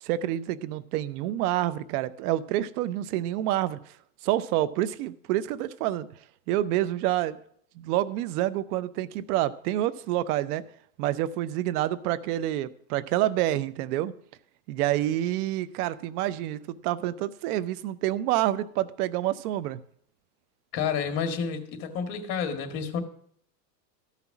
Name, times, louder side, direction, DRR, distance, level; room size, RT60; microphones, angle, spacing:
voice 1, 0.0-3.8 4.2-6.1 6.5-7.4 7.8-10.6 11.0-14.1 14.7-19.8, right 13 dB, 60° right, 17 dB, 0.7 m, -28 dB
voice 2, 20.7-23.0, left 6 dB, 45° left, 6 dB, 1.9 m, -30 dB
13.5 x 5.8 x 5.9 m, 0.63 s
supercardioid pair, 125°, 50 cm